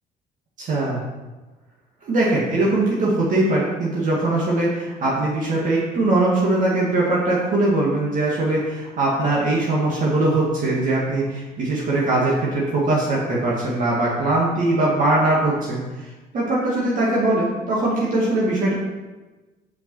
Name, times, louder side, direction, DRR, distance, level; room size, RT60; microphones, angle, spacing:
voice 1, 0.6-1.0 2.0-16.1 16.3-18.7, right 2 dB, 50° right, -5 dB, 1.8 m, -21 dB
5.8 x 5.2 x 6.0 m, 1.2 s
cardioid pair, 110°, 17 cm